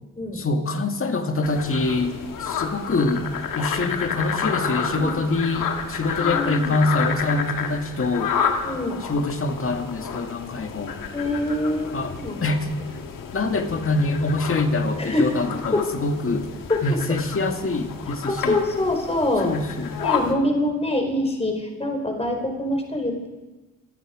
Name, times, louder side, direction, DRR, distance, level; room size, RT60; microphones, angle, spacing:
voice 1, 0.3-2.2 2.4-3.3 3.6-8.4 9.0-11.0 11.9-12.1 12.4-12.7 13.3-16.5 16.8-18.6 19.4-20.0, left 2 dB, 40° left, 5 dB, 2.1 m, -25 dB
sound 1, 1.4-20.3, left 7 dB, 80° left, 1.7 m, -30 dB
voice 2, 4.8-5.2 6.2-6.8 8.6-9.0 11.1-12.5 15.0-15.3 15.7-15.9 16.7-16.8 18.3-19.5 20.0-23.3, left 1 dB, 20° left, 3 dB, 4.2 m, -25 dB
26.5 x 9.4 x 5.0 m, 1.2 s
cardioid pair, 65°, 32 cm